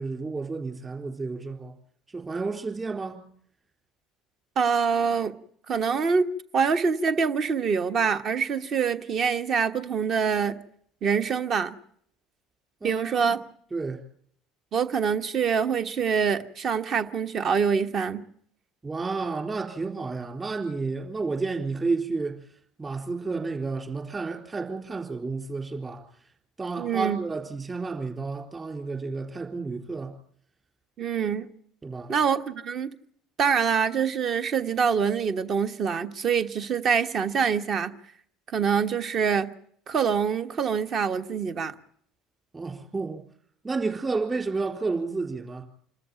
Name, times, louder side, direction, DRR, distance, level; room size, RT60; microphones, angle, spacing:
voice 1, 0.0-1.7 2.1-3.2 12.8-13.4 13.7-14.0 18.8-22.4 22.8-26.1 26.6-30.2 31.8-32.1 42.5-43.2 43.6-45.6, right 4 dB, 20° right, 4.0 m, -31 dB
voice 2, 4.6-5.4 5.7-6.3 6.5-10.6 11.0-11.7 12.8-13.4 14.7-18.2 26.8-27.2 31.0-31.5 32.1-32.9 33.4-37.9 38.5-39.5 39.9-41.7, right 6 dB, 40° right, 1.3 m, -25 dB
27.0 x 13.5 x 9.0 m
figure-of-eight pair, 65°, 0 cm